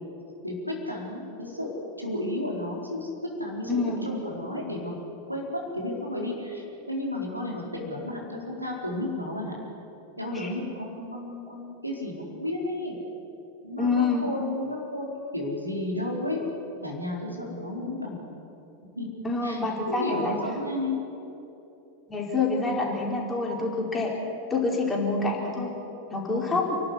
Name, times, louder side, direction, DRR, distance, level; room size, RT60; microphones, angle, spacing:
voice 1, 0.4-1.7 2.0-3.1 3.4-4.9 5.3-9.6 10.2-13.0 13.6-15.1 15.3-16.4 16.8-18.2 18.9-19.1 19.4-19.6 19.9-21.0 26.3-26.6, left 1 dB, 90° right, -2 dB, 4.4 m, -32 dB
voice 2, 3.7-4.0 10.3-10.5 13.8-14.3 19.2-20.4 22.1-24.1 24.5-25.7 26.1-26.8, left 3 dB, 15° left, -2 dB, 4.8 m, -27 dB
29.0 x 12.0 x 9.9 m, 3.0 s
figure-of-eight pair, 90°, 0 cm